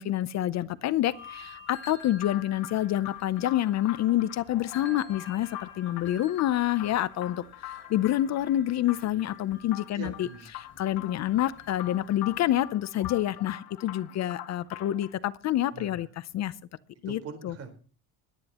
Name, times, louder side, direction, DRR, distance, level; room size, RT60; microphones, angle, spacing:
voice 1, 0.0-10.3 10.6-16.1 16.3-16.5 17.0-17.5, left 13 dB, 50° left, 16 dB, 0.7 m, -28 dB
sound 1, 1.1-12.6, left 4 dB, 35° left, 7.6 m, -50 dB
sound 2, 2.2-15.1, left 14 dB, 75° left, 2.3 m, -44 dB
voice 2, 9.9-10.5 15.7-16.0 17.1-17.7, right 5 dB, 45° right, 7 dB, 4.3 m, -42 dB
22.0 x 9.9 x 3.0 m, 0.38 s
cardioid pair, 150°, 36 cm